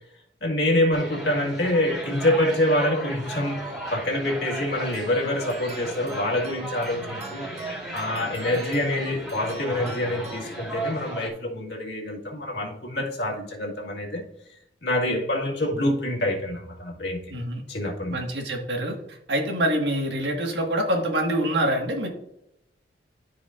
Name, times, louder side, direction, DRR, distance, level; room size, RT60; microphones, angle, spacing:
voice 1, 0.4-7.5 7.9-17.3 17.7-18.1, left 1 dB, 65° left, 2.0 m, -26 dB
sound 1, 0.9-11.3, right 1 dB, 5° right, 3.1 m, -35 dB
sound 2, 4.9-11.1, right 4 dB, 40° right, 1.4 m, -46 dB
voice 2, 17.3-17.6 18.1-22.1, right 1 dB, 70° right, 1.8 m, -26 dB
13.5 x 5.0 x 2.6 m
head